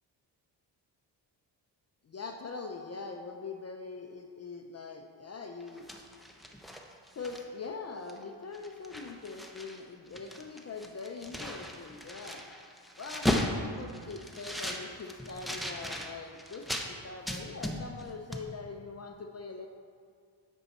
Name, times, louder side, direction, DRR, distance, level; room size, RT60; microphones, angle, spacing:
voice 1, 2.0-5.9 7.1-12.5 13.0-19.7, left 4 dB, 35° left, 3 dB, 0.5 m, -42 dB
sound 1, 5.6-7.7 8.1-8.2 8.5-9.8 10.1-16.9 17.3-18.1 18.3-18.5, left 1 dB, ahead, 0.7 m, -36 dB
8.8 x 5.5 x 4.1 m, 2.2 s
cardioid pair, 95°, 44 cm